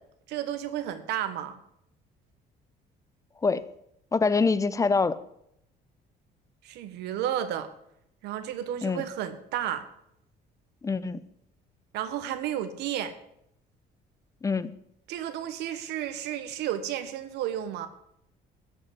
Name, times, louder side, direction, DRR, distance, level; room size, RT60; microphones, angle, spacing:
voice 1, 0.3-1.6 6.6-7.7 8.2-9.9 11.9-13.1 15.1-17.9, right 11 dB, 85° right, 10 dB, 1.2 m, -32 dB
voice 2, 4.1-5.2 8.8-9.0 10.8-11.2 14.4-14.7, left 4 dB, 20° left, 15 dB, 0.6 m, -25 dB
13.0 x 5.0 x 7.7 m, 0.76 s
cardioid pair, 110°, 17 cm